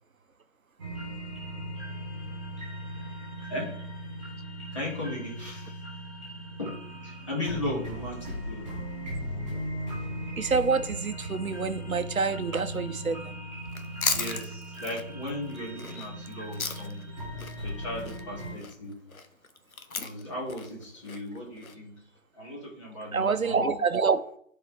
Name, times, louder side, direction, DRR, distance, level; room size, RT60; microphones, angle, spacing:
sound 1, 0.8-18.5, equal, 20° right, 3.1 m, -38 dB
voice 1, 4.7-5.8 6.6-6.8 7.0-9.5 14.1-17.2 17.6-19.0 19.9-22.0 22.3-23.8, left 1 dB, 20° left, 2.2 m, -36 dB
voice 2, 10.4-13.3 23.1-24.2, right 5 dB, 85° right, 0.9 m, -27 dB
Chewing mastication, 13.7-17.1 17.4-21.7, left 4 dB, 85° left, 1.0 m, -35 dB
12.0 x 4.7 x 3.3 m
figure-of-eight pair, 165°, 41 cm